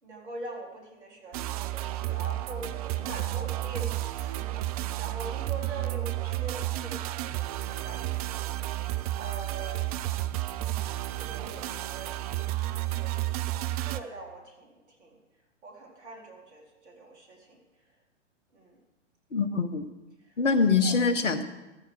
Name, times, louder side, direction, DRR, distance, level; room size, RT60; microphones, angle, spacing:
voice 1, 0.0-8.5 9.1-10.1 11.1-12.9 13.8-15.2 15.6-17.6 17.9-18.0 18.5-18.8 20.2-20.4 20.8-21.0, right 2 dB, 65° right, 0 dB, 4.1 m, -43 dB
sound 1, 1.3-14.0, right 16 dB, 30° right, 0.5 m, -32 dB
voice 2, 19.3-19.9 20.4-21.4, left 4 dB, 75° left, 11 dB, 1.4 m, -24 dB
14.5 x 14.0 x 4.8 m, 1.1 s
figure-of-eight pair, 110°, 37 cm